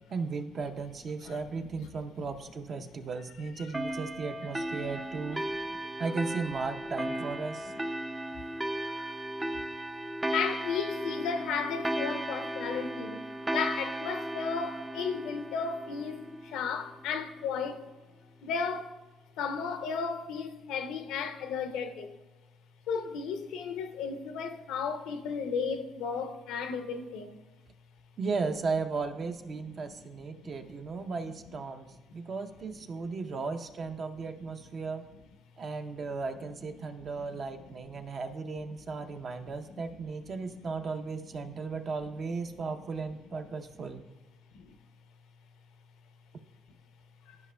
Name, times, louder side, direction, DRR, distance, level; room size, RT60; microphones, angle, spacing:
voice 1, 0.1-5.4 6.0-7.7 28.2-35.0 35.6-44.0, right 4 dB, 50° right, 0.7 m, -36 dB
sound 1, 3.7-16.8, right 1 dB, 15° right, 0.4 m, -36 dB
voice 2, 5.4-6.0 8.8-9.3 10.3-17.9 18.4-19.0 19.4-22.2 22.9-27.4 29.6-29.9 30.4-30.5 36.8-36.9 37.2-37.3 37.9-38.0 39.1-39.2 39.7-39.8 41.4-41.5 44.5-44.8 47.3-47.4, left 6 dB, 80° left, 0.6 m, -35 dB
12.0 x 5.2 x 2.2 m
supercardioid pair, 75°, 0 cm